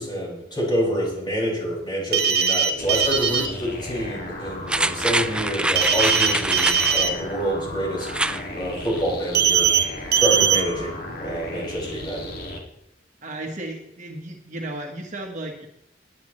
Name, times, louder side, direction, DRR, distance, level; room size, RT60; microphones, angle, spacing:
voice 1, 0.0-9.7 10.2-12.3, equal, 25° left, -4 dB, 5.9 m, -27 dB
sound 1, 2.1-3.5 5.7-7.1 9.3-9.8 10.1-10.6, right 7 dB, 65° right, 1.2 m, -20 dB
sound 2, 2.8-12.6, left 1 dB, 60° left, 2.3 m, -35 dB
sound 3, 4.7-7.0 8.0-8.4 8.8-8.9, right 2 dB, 5° right, 0.3 m, -24 dB
voice 2, 13.2-15.7, right 1 dB, 45° right, 1 dB, 1.5 m, -34 dB
20.0 x 9.4 x 3.2 m, 0.82 s
head